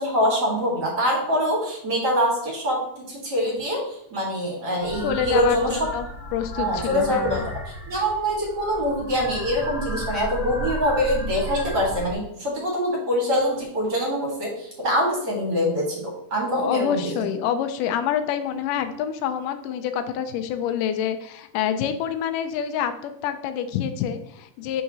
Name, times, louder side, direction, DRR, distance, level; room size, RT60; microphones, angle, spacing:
voice 1, 0.0-5.8 6.6-7.4 7.9-17.1, equal, 35° right, -3 dB, 2.1 m, -24 dB
sound 1, 4.8-12.1, equal, ahead, 0.8 m, -34 dB
voice 2, 5.0-6.1 6.3-7.4 16.5-24.8, left 9 dB, 85° left, 9 dB, 2.2 m, -27 dB
6.5 x 5.8 x 2.9 m, 0.75 s
omnidirectional pair, 3.7 m